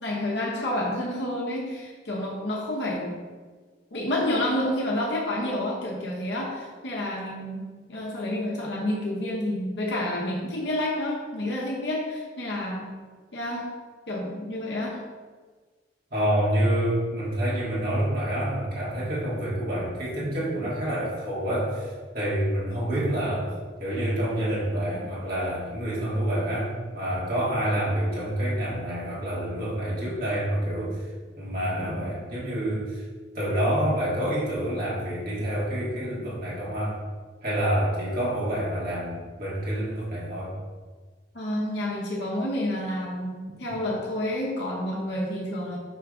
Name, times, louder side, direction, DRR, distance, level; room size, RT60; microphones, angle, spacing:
voice 1, 0.0-3.1 3.9-12.9 13.3-13.7 14.1-15.0 41.3-45.8, left 1 dB, 75° left, -3 dB, 0.9 m, -29 dB
voice 2, 16.1-23.5 23.8-31.0 31.4-33.0 33.3-37.0 37.4-40.5, right 1 dB, 55° right, -7 dB, 1.9 m, -27 dB
6.1 x 3.5 x 4.8 m, 1.5 s
head